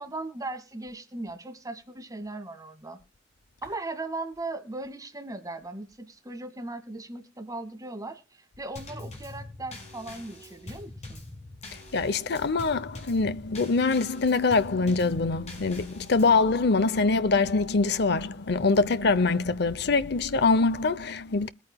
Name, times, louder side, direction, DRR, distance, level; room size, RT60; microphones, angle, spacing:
voice 1, 0.0-3.0 3.6-11.2, right 2 dB, 20° right, 1.9 m, -38 dB
Drum kit / Snare drum / Bass drum, 8.8-16.4, left 2 dB, 40° left, 5.1 m, -44 dB
voice 2, 11.9-21.5, left 4 dB, 65° left, 0.7 m, -24 dB
21.5 x 9.2 x 2.3 m
head